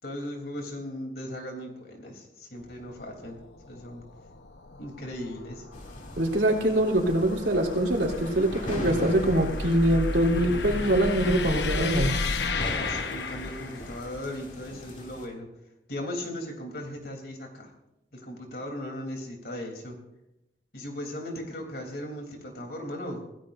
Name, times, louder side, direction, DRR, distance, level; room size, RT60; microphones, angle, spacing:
voice 1, 0.0-3.4 3.7-4.0 4.8-5.6 12.7-15.5 15.9-17.7 18.1-20.0 20.7-23.2, left 1 dB, 60° left, 2 dB, 3.4 m, -37 dB
sound 1, 2.6-14.0, left 3 dB, 90° left, 1.0 m, -34 dB
sound 2, 5.7-15.3, left 1 dB, 45° left, 2.7 m, -40 dB
voice 2, 6.2-12.1, right 1 dB, 90° right, 0 dB, 3.5 m, -24 dB
26.0 x 17.0 x 2.7 m, 0.90 s
head